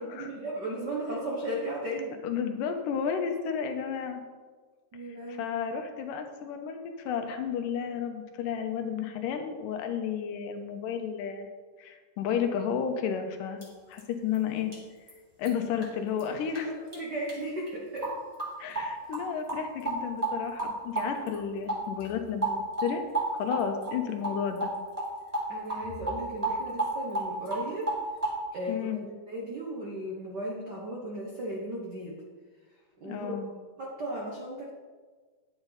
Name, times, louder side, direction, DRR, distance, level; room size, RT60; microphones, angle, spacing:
voice 1, 0.0-2.2 4.9-5.5 16.5-18.1 25.5-27.9 28.5-28.9 29.2-32.2 33.0-33.4 33.8-34.7, right 1 dB, 75° right, -3 dB, 0.9 m, -36 dB
voice 2, 2.2-4.2 5.3-11.5 11.8-13.6 13.9-14.7 15.4-16.7 18.6-22.5 22.8-23.0 23.3-24.7 28.7-29.1 33.0-33.5, left 7 dB, 80° left, 6 dB, 2.4 m, -32 dB
sound 1, 13.6-13.7 14.0-14.1 14.3-14.4 14.7-14.8 15.1-15.2 15.4-15.5 15.8-15.9 16.2-16.3 16.5-16.6 16.9-17.0 17.3-17.4 17.7-17.8 18.0-18.1 18.4-18.5 18.7-18.9 19.1-19.2 19.5-20.0 20.2-20.3 20.6-20.7 20.9-21.4 21.7-22.2 22.4-22.9 23.1-23.9 24.2-24.7 25.0-25.1 25.3-25.4 25.7-27.6 27.9-28.3, right 2 dB, 15° right, 1.7 m, -31 dB
10.0 x 9.0 x 4.0 m, 1.4 s
omnidirectional pair, 3.9 m